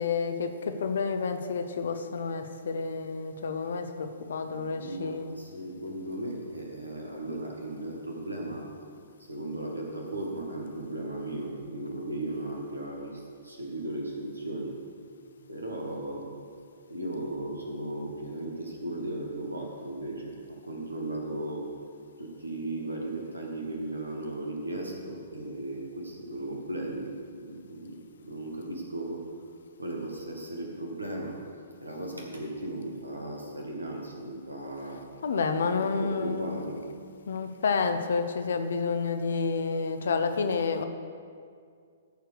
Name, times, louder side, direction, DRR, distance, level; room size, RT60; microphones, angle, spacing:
voice 1, 0.0-5.3 35.2-36.7 37.3-40.8, left 5 dB, 60° left, 8 dB, 0.9 m, -29 dB
voice 2, 4.5-8.9 9.3-14.7 15.5-16.3 16.9-21.7 22.2-29.2 29.8-31.4 31.8-35.0 35.8-36.8, right 1 dB, 85° right, -1 dB, 2.0 m, -36 dB
13.5 x 4.6 x 6.5 m, 2.2 s
figure-of-eight pair, 115°, 0 cm